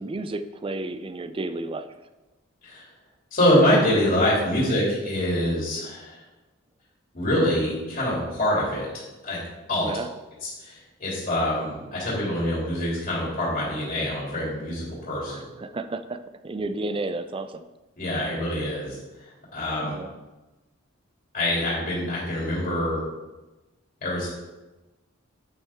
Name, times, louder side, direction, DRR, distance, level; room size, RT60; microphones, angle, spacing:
voice 1, 0.0-1.9 9.8-10.1 15.3-16.2 16.4-17.6 19.8-20.1, right 2 dB, 25° right, 10 dB, 0.4 m, -32 dB
voice 2, 3.3-6.2 7.1-9.4 9.7-9.9 10.4-15.4 18.0-19.9 21.3-23.0 24.0-24.3, left 1 dB, 40° left, -6 dB, 3.1 m, -25 dB
8.7 x 7.2 x 3.6 m, 1.1 s
head